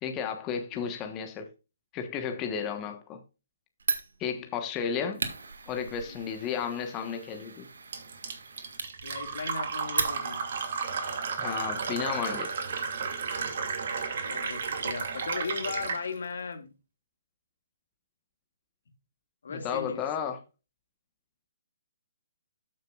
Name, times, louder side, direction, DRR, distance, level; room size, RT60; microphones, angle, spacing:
voice 1, 0.0-1.5 1.9-3.2 4.2-5.2 5.7-7.7 11.4-12.5 19.5-20.4, left 7 dB, 20° left, 1.2 m, -33 dB
Fire, 3.8-10.6, right 4 dB, 85° right, 1.8 m, -37 dB
Fill (with liquid), 7.9-16.0, right 5 dB, 55° right, 2.6 m, -33 dB
voice 2, 9.0-10.5 14.2-16.7 19.4-20.1, left 5 dB, 75° left, 2.0 m, -37 dB
13.5 x 6.4 x 2.4 m
hypercardioid pair, 155°, 0 cm